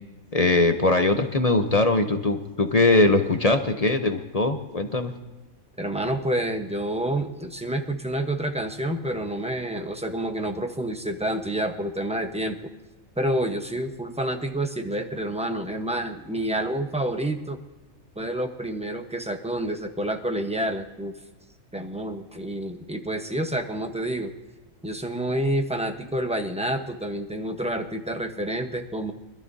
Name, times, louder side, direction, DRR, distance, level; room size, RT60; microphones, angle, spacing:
voice 1, 0.3-5.1, left 2 dB, 35° left, 6 dB, 0.7 m, -21 dB
voice 2, 5.8-12.6 13.2-17.6 18.2-21.1 21.7-24.3 24.8-29.1, right 1 dB, 5° right, 5 dB, 0.8 m, -28 dB
25.0 x 12.5 x 2.7 m, 1.1 s
omnidirectional pair, 1.5 m